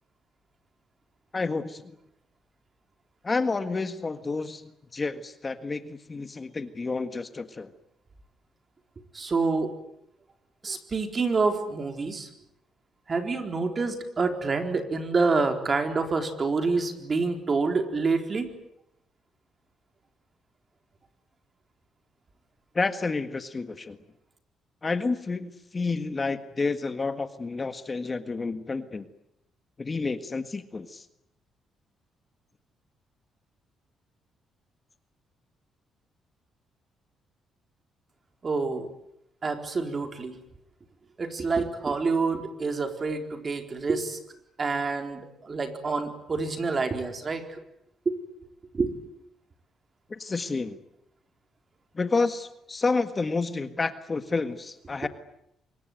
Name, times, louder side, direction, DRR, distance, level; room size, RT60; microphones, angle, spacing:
voice 1, 1.3-2.0 3.2-7.7 22.7-24.0 24.8-29.1 29.8-31.0 50.1-50.8 51.9-55.1, left 3 dB, 30° left, 10 dB, 1.7 m, -30 dB
voice 2, 9.1-9.7 10.6-12.3 13.1-18.5 38.4-38.9 39.4-40.4 41.2-44.2 44.6-47.6 48.1-48.2 48.7-48.9, right 4 dB, 35° right, 6 dB, 4.2 m, -27 dB
25.0 x 22.5 x 9.3 m, 0.79 s
cardioid pair, 90°, 0 cm